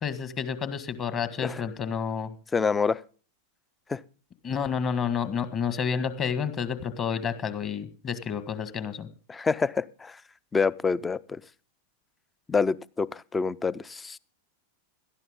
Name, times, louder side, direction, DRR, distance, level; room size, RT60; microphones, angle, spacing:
voice 1, 0.0-2.3 4.4-9.1, left 7 dB, 30° left, 12 dB, 1.7 m, -30 dB
voice 2, 2.5-3.0 3.9-4.0 9.3-10.2 10.5-11.4 12.5-14.2, left 5 dB, 15° left, 22 dB, 0.5 m, -27 dB
17.5 x 12.5 x 3.7 m, 0.38 s
figure-of-eight pair, 90°, 0 cm